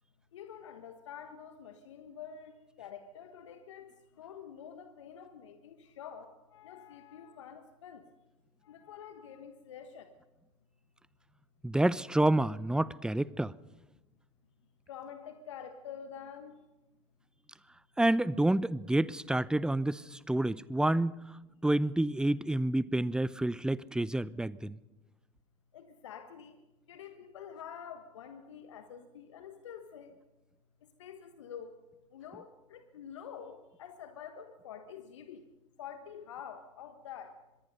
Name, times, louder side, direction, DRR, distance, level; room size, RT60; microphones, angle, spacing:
voice 1, 0.3-2.5 2.8-3.8 4.2-8.0 8.6-10.1 14.9-16.5 25.7-26.6 26.9-30.1 31.0-31.7 32.1-35.5 35.8-37.3, left 8 dB, 75° left, 1.3 m, -47 dB
voice 2, 11.6-13.5 18.0-21.1 21.6-24.8, right 1 dB, 5° right, 0.7 m, -28 dB
24.5 x 21.5 x 5.3 m
figure-of-eight pair, 70°, 15 cm